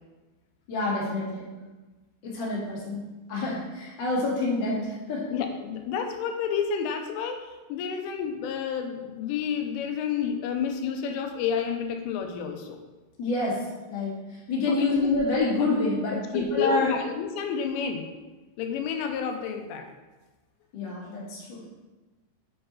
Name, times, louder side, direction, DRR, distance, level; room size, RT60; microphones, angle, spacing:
voice 1, 0.7-1.4 2.2-3.0 3.3-5.3 13.2-13.6 13.9-14.1 14.5-17.0 20.7-21.6, left 2 dB, 40° left, -6 dB, 1.7 m, -27 dB
voice 2, 5.3-12.8 14.7-15.1 15.6-15.7 16.1-18.1 18.6-19.9, left 7 dB, 90° left, 5 dB, 3.2 m, -30 dB
7.8 x 6.7 x 4.1 m, 1.2 s
omnidirectional pair, 5.7 m